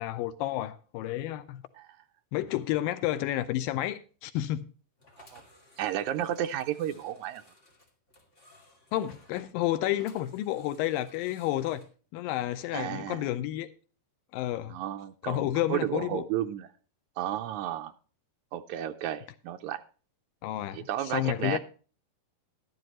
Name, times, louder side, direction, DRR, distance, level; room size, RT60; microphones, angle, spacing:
voice 1, 0.0-1.6 2.3-4.6 8.9-11.8 12.1-13.7 14.3-14.7 15.2-16.3 20.4-21.6, left 14 dB, 85° left, 2.3 m, -30 dB
sound 1, 5.0-11.9, left 2 dB, 25° left, 2.2 m, -58 dB
voice 2, 5.8-7.4 12.7-13.3 14.7-16.7 17.2-17.9 18.5-19.8 20.7-21.6, right 11 dB, 85° right, 1.7 m, -33 dB
12.5 x 12.0 x 3.0 m
omnidirectional pair, 4.1 m